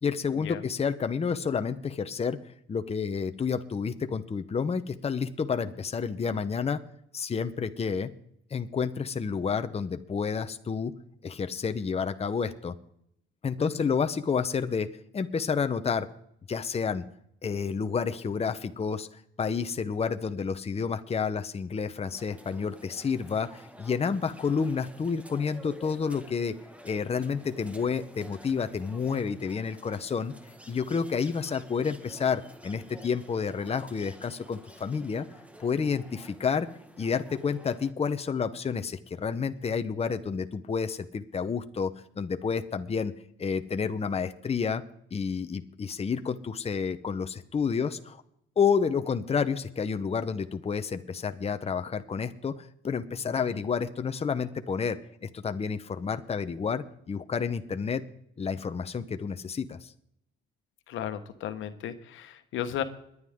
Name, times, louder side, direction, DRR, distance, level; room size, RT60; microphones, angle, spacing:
voice 1, 0.0-2.4 2.7-6.8 7.1-8.1 8.5-10.9 11.2-12.7 13.4-16.1 16.5-17.0 17.4-26.6 26.8-30.3 30.7-35.3 35.6-36.7 37.0-43.1 43.4-44.8 45.1-48.2 48.6-58.0 58.4-59.9, left 6 dB, 30° left, 9 dB, 0.8 m, -30 dB
voice 2, 13.6-13.9 53.4-53.5 60.9-62.8, left 10 dB, 85° left, 9 dB, 1.2 m, -35 dB
sound 1, 22.0-37.9, right 1 dB, 5° right, 1.4 m, -51 dB
21.5 x 9.5 x 3.7 m, 0.73 s
cardioid pair, 90°, 20 cm